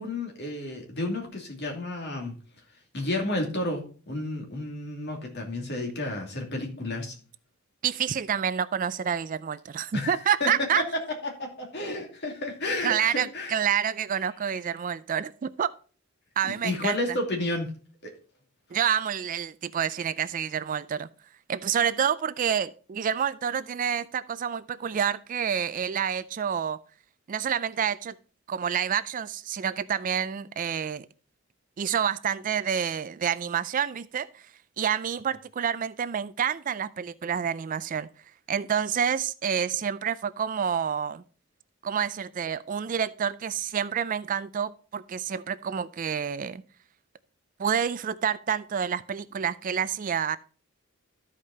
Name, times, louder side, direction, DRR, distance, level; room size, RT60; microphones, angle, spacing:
voice 1, 0.0-2.3 2.9-7.1 9.9-10.5 11.2-13.6 16.6-17.7 18.0-18.1, left 2 dB, 55° left, 2 dB, 2.6 m, -31 dB
voice 2, 7.8-10.8 12.8-15.7 16.4-17.2 18.7-21.1 21.5-26.8 27.3-28.2 28.5-31.1 31.8-34.4 34.8-38.1 38.5-41.2 41.8-46.6 47.6-50.4, right 8 dB, 40° right, 16 dB, 0.4 m, -28 dB
13.0 x 5.0 x 4.2 m, 0.39 s
head